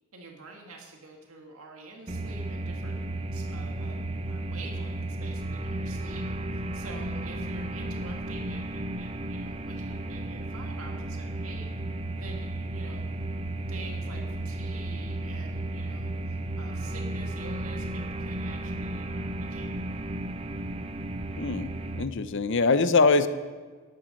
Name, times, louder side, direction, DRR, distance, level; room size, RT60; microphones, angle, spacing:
voice 1, 0.1-3.0 3.3-11.7 12.1-13.0 13.7-19.9, right 3 dB, 80° right, 1 dB, 1.9 m, -47 dB
sound 1, 2.1-22.0, right 1 dB, 25° right, 0.6 m, -34 dB
voice 2, 21.4-23.3, left 4 dB, 60° left, 12 dB, 0.7 m, -23 dB
12.5 x 10.5 x 6.4 m, 1.5 s
head